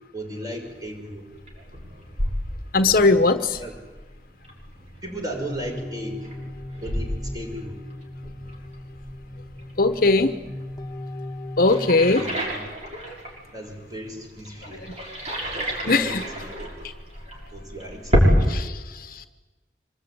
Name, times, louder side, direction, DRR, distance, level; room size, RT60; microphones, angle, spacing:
voice 1, 0.1-1.3 3.0-3.2 3.6-3.7 5.0-6.3 6.8-7.8 12.1-12.6 13.5-14.9 15.8-16.7 17.5-18.7, right 1 dB, 20° right, 2 dB, 6.2 m, -36 dB
sound 1, 0.6-18.5, equal, 40° right, 6.9 m, -30 dB
voice 2, 2.7-3.6 9.8-10.3 11.6-12.2 15.9-16.2 18.5-19.3, left 3 dB, 55° left, 10 dB, 1.2 m, -19 dB
sound 2, 5.3-12.1, left 1 dB, 20° left, 1.5 m, -38 dB
25.5 x 21.0 x 9.8 m, 1.2 s
head